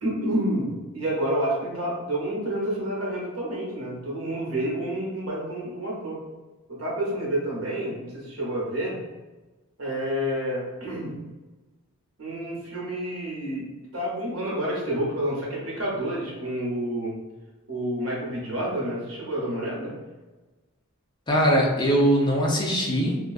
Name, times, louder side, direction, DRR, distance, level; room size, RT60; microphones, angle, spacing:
voice 1, 0.0-6.2 6.7-9.0 9.8-11.1 12.2-13.7 13.9-17.1 17.7-19.9, right 1 dB, 60° right, -5 dB, 0.9 m, -29 dB
voice 2, 21.3-23.3, equal, 20° left, -2 dB, 0.4 m, -21 dB
2.5 x 2.1 x 2.3 m, 1.2 s
head